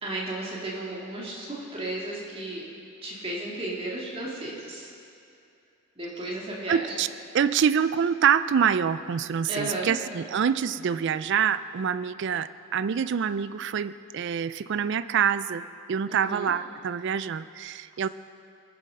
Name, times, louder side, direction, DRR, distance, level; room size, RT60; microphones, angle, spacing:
voice 1, 0.0-2.6 3.0-4.9 6.0-6.9 9.4-10.0 16.1-16.5, right 1 dB, 25° right, -4 dB, 2.1 m, -34 dB
voice 2, 6.7-7.1 7.3-18.1, right 7 dB, 55° right, 15 dB, 0.3 m, -26 dB
19.5 x 7.2 x 5.4 m, 2.5 s
head